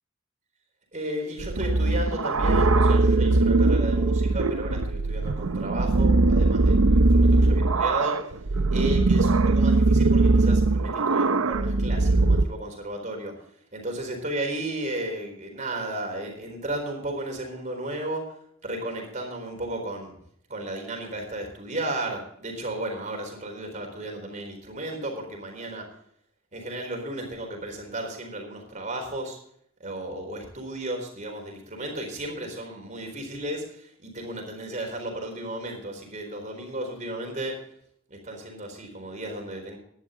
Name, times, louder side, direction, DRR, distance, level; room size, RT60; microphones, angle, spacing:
voice 1, 0.9-8.2 8.7-13.3 13.7-18.3 18.6-20.1 20.5-25.8 26.5-29.4 29.8-37.6 38.1-39.8, right 1 dB, 35° right, 3 dB, 4.1 m, -34 dB
sound 1, 1.4-12.4, right 2 dB, 80° right, 0.7 m, -21 dB
16.0 x 11.0 x 3.8 m, 0.67 s
head